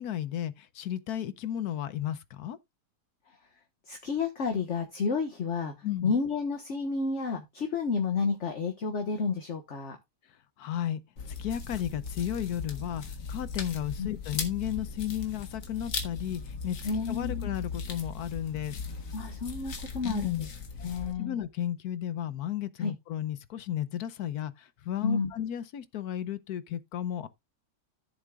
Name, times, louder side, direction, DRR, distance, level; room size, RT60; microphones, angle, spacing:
voice 1, 0.0-2.6 5.8-6.1 10.6-11.0 11.4-16.8 17.1-18.8 20.0-20.5 21.2-27.3, left 11 dB, 70° left, 1.2 m, -34 dB
voice 2, 3.9-10.0 14.0-14.1 16.8-17.5 19.1-20.5 20.8-21.4 22.8-22.9 25.0-25.3, left 5 dB, 45° left, 1.5 m, -31 dB
sound 1, 11.2-21.1, left 4 dB, 85° left, 2.2 m, -38 dB
14.0 x 7.5 x 2.3 m
omnidirectional pair, 1.8 m